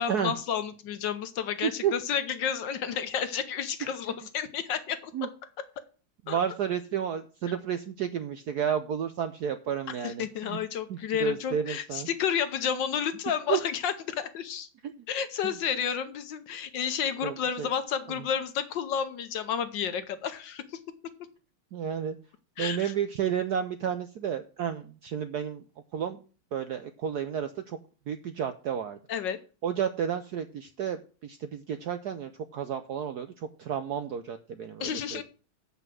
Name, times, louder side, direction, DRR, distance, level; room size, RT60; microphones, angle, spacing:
voice 1, 0.0-5.3 6.3-6.4 9.9-14.7 15.1-20.8 22.6-22.9 29.1-29.4 34.8-35.2, left 8 dB, 65° left, 10 dB, 1.3 m, -31 dB
voice 2, 1.6-1.9 5.1-5.3 6.3-10.6 10.9-12.1 13.5-13.6 15.4-15.5 17.2-17.7 21.7-22.1 22.6-25.6 25.9-26.2 26.5-27.8 28.1-29.0 29.6-31.0 31.2-33.3 33.6-35.2, right 8 dB, 70° right, 10 dB, 0.9 m, -31 dB
8.1 x 5.7 x 7.5 m, 0.37 s
omnidirectional pair, 2.4 m